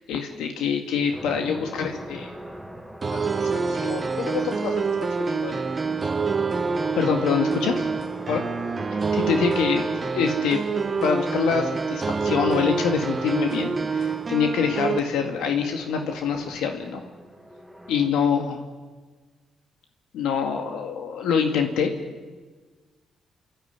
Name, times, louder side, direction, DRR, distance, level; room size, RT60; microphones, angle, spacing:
voice 1, 0.0-2.3 3.1-4.8 5.2-5.6 7.0-7.8 8.3-8.4 9.1-9.8 10.1-10.6 11.0-17.0 17.9-18.6 20.1-21.9, left 6 dB, 85° left, 4 dB, 2.1 m, -25 dB
sound 1, 1.1-18.1, right 1 dB, 5° right, 1.9 m, -41 dB
sound 2, 3.0-15.0, right 4 dB, 30° right, 1.2 m, -26 dB
28.5 x 12.5 x 9.6 m, 1.4 s
cardioid pair, 90°, 0 cm